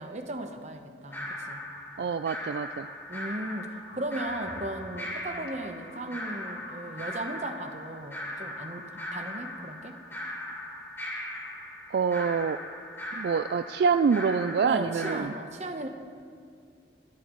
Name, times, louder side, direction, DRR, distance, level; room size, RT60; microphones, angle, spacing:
voice 1, 0.0-1.6 3.1-10.0 14.6-15.9, right 1 dB, 40° right, 6 dB, 1.0 m, -36 dB
sound 1, 1.1-15.2, left 1 dB, 15° left, 1.9 m, -39 dB
voice 2, 2.0-2.9 11.9-12.6 13.1-15.3, right 5 dB, 70° right, 10 dB, 0.3 m, -26 dB
sound 2, 3.9-9.7 10.0-10.8 11.3-11.6, left 1 dB, 90° left, 1.6 m, -51 dB
19.0 x 14.0 x 3.1 m, 2.3 s
head